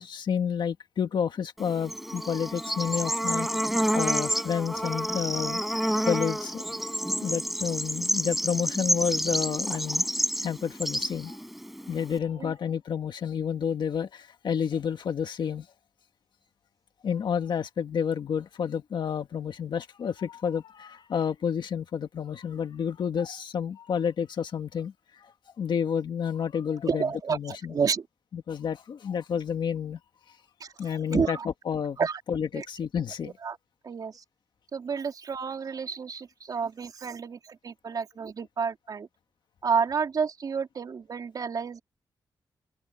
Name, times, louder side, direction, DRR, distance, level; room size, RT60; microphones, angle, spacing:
voice 1, 0.0-3.5 3.9-5.6 6.1-6.7 7.2-10.1 10.4-11.4 11.9-15.7 17.0-24.9 25.2-25.3 25.6-27.8 28.3-30.0 30.8-33.4, left 7 dB, 70° left, 1.7 m, -30 dB
Bird / Insect, 1.6-12.2, equal, ahead, 5.5 m, -29 dB
voice 2, 26.8-28.1 30.6-31.5 32.0-32.2 32.5-32.7 33.2-33.6 33.8-34.2 34.7-39.1 39.6-41.8, right 6 dB, 50° right, 3.9 m, -30 dB
open air
wide cardioid pair, 155°, 8 cm